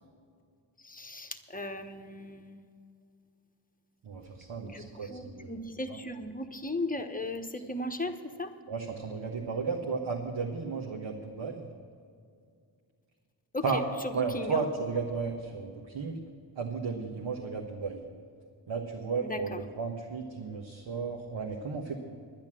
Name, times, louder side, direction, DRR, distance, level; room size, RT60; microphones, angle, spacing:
voice 1, 0.8-2.6 4.6-8.5 13.5-14.6 19.2-19.6, left 2 dB, 20° left, 6 dB, 1.1 m, -37 dB
voice 2, 4.0-5.5 5.9-6.0 8.7-11.6 13.6-13.8 14.1-16.2 16.6-18.0 18.7-22.0, right 5 dB, 70° right, -1 dB, 1.5 m, -34 dB
10.5 x 10.5 x 7.5 m, 2.3 s
cardioid pair, 65°, 46 cm